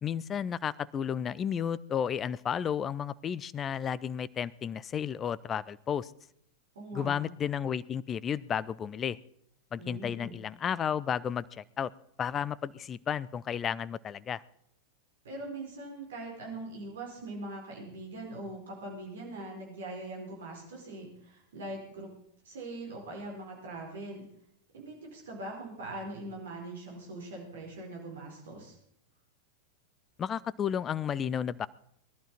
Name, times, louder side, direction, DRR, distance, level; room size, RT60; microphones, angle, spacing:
voice 1, 0.0-6.1 6.9-9.2 9.7-11.9 12.2-14.4 30.2-31.7, left 8 dB, 25° left, 21 dB, 0.5 m, -32 dB
voice 2, 6.7-7.2 9.8-10.3 15.2-22.1 22.4-24.3 24.7-28.7, right 2 dB, 60° right, -1 dB, 4.5 m, -42 dB
20.0 x 11.5 x 4.3 m, 0.72 s
figure-of-eight pair, 90°, 0 cm